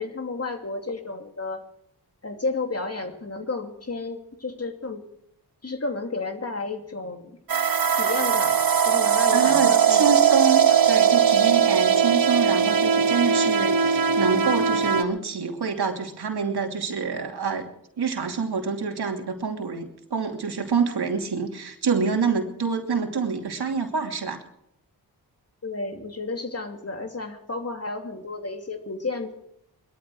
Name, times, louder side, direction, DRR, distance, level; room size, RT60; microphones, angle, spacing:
voice 1, 0.0-1.6 2.2-5.0 5.6-7.4 7.9-8.6 8.9-10.0 25.6-29.3, left 3 dB, 40° left, 5 dB, 2.7 m, -32 dB
sound 1, 7.5-15.0, right 7 dB, 60° right, 1.2 m, -20 dB
voice 2, 9.3-17.7 18.0-24.4, right 5 dB, 75° right, 3 dB, 2.8 m, -26 dB
21.5 x 13.5 x 4.8 m, 0.74 s
cardioid pair, 55°, 39 cm